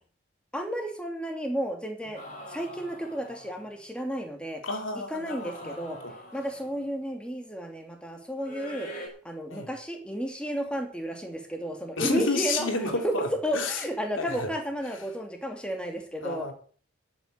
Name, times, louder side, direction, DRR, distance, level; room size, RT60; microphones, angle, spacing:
voice 1, 0.5-2.2 2.5-4.6 5.1-6.0 6.3-8.9 9.2-13.1 13.4-16.5, equal, 5° left, 3 dB, 2.7 m, -32 dB
sound 1, 2.2-3.8 5.1-6.9 8.4-9.1, equal, 40° left, 5.2 m, -44 dB
voice 2, 4.6-5.8 6.0-6.1 9.5-9.7 12.0-13.8 14.2-14.5 16.2-16.5, left 3 dB, 85° left, 4 dB, 3.1 m, -31 dB
13.0 x 9.2 x 6.6 m, 0.44 s
head